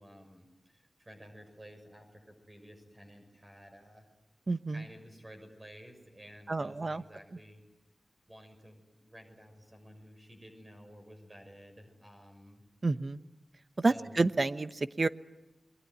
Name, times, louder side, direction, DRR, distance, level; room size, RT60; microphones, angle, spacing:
voice 1, 0.0-4.1 4.7-7.6 8.3-12.6 13.7-14.1, equal, 25° right, 5 dB, 6.2 m, -53 dB
voice 2, 4.5-4.8 6.5-7.0 12.8-13.2 13.8-15.1, right 3 dB, 45° right, 12 dB, 1.0 m, -29 dB
28.5 x 22.5 x 9.4 m, 0.99 s
wide cardioid pair, 75°, 0 cm